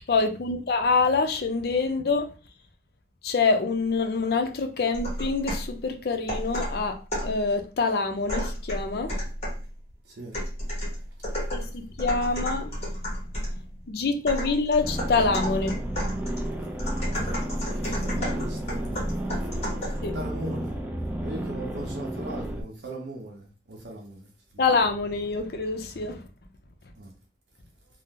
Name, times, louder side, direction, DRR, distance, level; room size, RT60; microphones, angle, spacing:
voice 1, 0.1-2.3 3.2-7.0 7.2-9.1 11.5-13.3 13.8-15.8 20.0-20.1 24.6-26.3, left 4 dB, 60° left, 0.4 m, -26 dB
sound 1, 4.9-5.7 6.3-7.4 8.3-9.7 10.3-13.6 14.3-20.1, equal, 35° left, 1.0 m, -31 dB
voice 2, 10.0-10.4 16.6-16.7 17.8-19.2 20.1-20.8 21.2-24.6 27.0-27.1, right 1 dB, 80° right, 0.7 m, -39 dB
sound 2, 14.8-22.6, right 1 dB, 10° right, 0.3 m, -33 dB
2.7 x 2.0 x 3.5 m
head